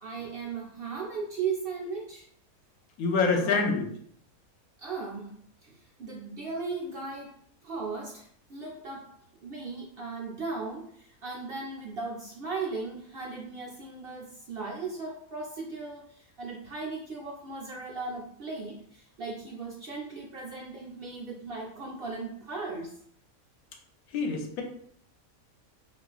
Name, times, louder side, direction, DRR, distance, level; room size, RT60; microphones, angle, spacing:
voice 1, 0.0-2.2 3.3-3.7 4.8-5.3 5.6-7.4 7.6-9.1 9.4-23.0, right 4 dB, 60° right, -3 dB, 0.6 m, -37 dB
voice 2, 3.0-3.8 24.1-24.6, left 4 dB, 85° left, 3 dB, 1.1 m, -26 dB
4.3 x 2.4 x 2.3 m, 0.64 s
omnidirectional pair, 1.5 m